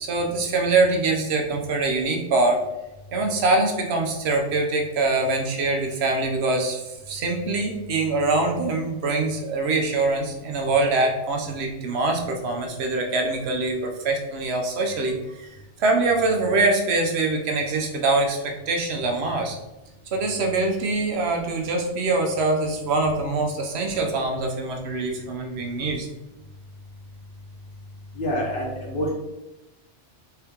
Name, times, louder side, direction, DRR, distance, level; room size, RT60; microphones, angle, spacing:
voice 1, 0.0-2.6 3.1-15.5 15.8-19.6 20.1-26.1, right 3 dB, 70° right, 2 dB, 0.9 m, -24 dB
voice 2, 28.2-29.1, equal, 60° left, -5 dB, 1.1 m, -26 dB
3.4 x 2.8 x 3.5 m, 0.97 s
omnidirectional pair, 1.2 m